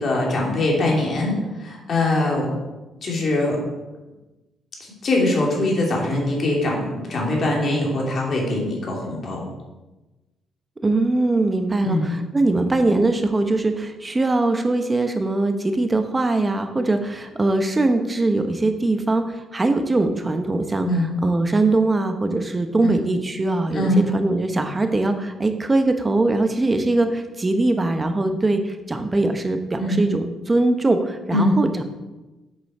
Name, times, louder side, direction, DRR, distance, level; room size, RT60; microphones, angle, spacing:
voice 1, 0.0-2.5 3.0-3.6 5.0-9.4 11.8-12.1 20.8-21.1 22.8-23.0 23.7-24.0 29.8-30.0 31.3-31.5, left 1 dB, 50° left, -2 dB, 2.6 m, -22 dB
voice 2, 10.8-20.9 21.2-31.8, right 2 dB, 20° right, 6 dB, 0.9 m, -21 dB
8.2 x 5.5 x 4.3 m, 1.1 s
cardioid pair, 90°, 0 cm